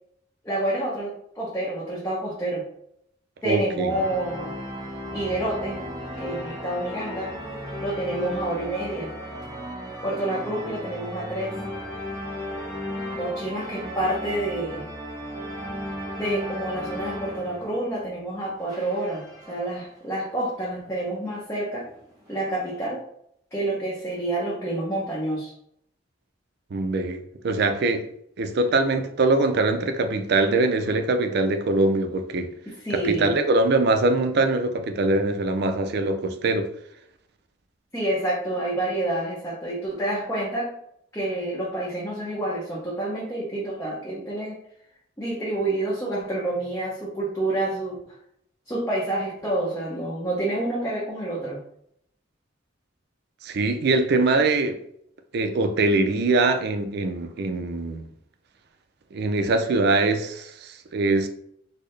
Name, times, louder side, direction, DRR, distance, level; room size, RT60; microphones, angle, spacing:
voice 1, 0.4-2.7 3.4-4.6 5.1-5.8 6.2-7.4 7.7-9.1 10.0-11.6 13.1-14.9 16.2-21.9 22.3-23.0 23.5-25.5 32.7-33.4 37.9-40.8 41.1-44.6 45.2-48.0 48.7-51.6, right 1 dB, 15° left, 0.7 m, -28 dB
voice 2, 3.4-3.9 26.7-28.0 28.4-32.5 33.0-36.7 53.4-54.8 55.3-58.0 59.1-61.3, right 2 dB, 60° right, 0.4 m, -23 dB
sound 1, 3.9-18.3 18.6-19.8 20.4-20.5 20.8-20.9 21.7-22.7, equal, 20° right, 1.1 m, -35 dB
4.3 x 2.0 x 3.2 m
head